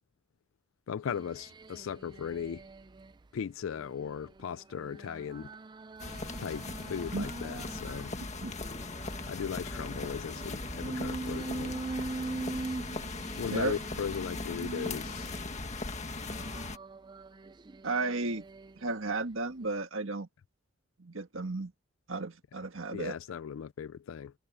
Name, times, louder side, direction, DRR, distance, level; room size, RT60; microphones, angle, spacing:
voice 1, 0.9-2.6 3.3-5.5 6.4-8.1 9.3-11.8 13.4-15.3 22.9-24.3, left 7 dB, 75° left, 0.4 m, -37 dB
sound 1, 1.1-3.1 3.6-8.1 8.6-15.6 16.1-19.0 19.5-19.8, right 3 dB, 20° right, 0.4 m, -43 dB
sound 2, 6.0-16.8, left 3 dB, 35° left, 1.7 m, -39 dB
voice 2, 17.8-18.4 18.8-20.3 21.0-21.7 22.1-23.2, right 3 dB, 75° right, 1.6 m, -33 dB
head